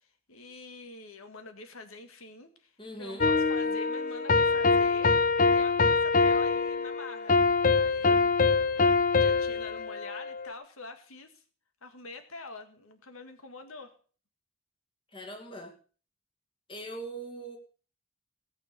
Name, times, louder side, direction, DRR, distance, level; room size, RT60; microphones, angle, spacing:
voice 1, 0.0-2.7 3.0-7.4 7.7-8.4 9.2-11.4 11.8-13.9, left 3 dB, 85° left, 7 dB, 1.9 m, -46 dB
voice 2, 2.8-3.3 15.1-15.7 16.7-17.6, right 1 dB, 25° left, 4 dB, 2.1 m, -41 dB
sound 1, 3.2-10.5, left 4 dB, 40° left, 0.6 m, -24 dB
17.5 x 6.8 x 6.8 m, 0.41 s
head